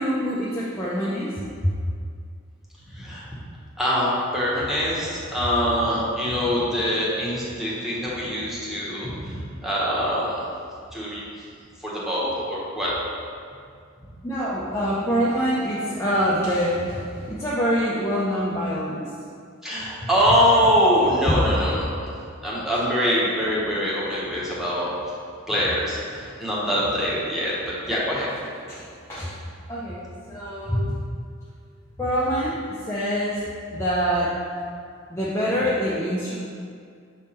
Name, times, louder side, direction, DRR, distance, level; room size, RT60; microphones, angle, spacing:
voice 1, 0.0-1.7 14.2-19.1 21.2-21.3 28.7-29.3 29.7-31.0 32.0-34.4 35.1-36.4, equal, 15° left, -7 dB, 0.6 m, -25 dB
voice 2, 2.9-3.2 3.8-4.1 4.3-10.4 10.9-11.2 11.8-12.9 19.6-22.0 22.4-24.9 25.5-27.5 27.9-28.3, equal, ahead, -7 dB, 1.2 m, -23 dB
6.3 x 3.6 x 4.3 m, 2.3 s
head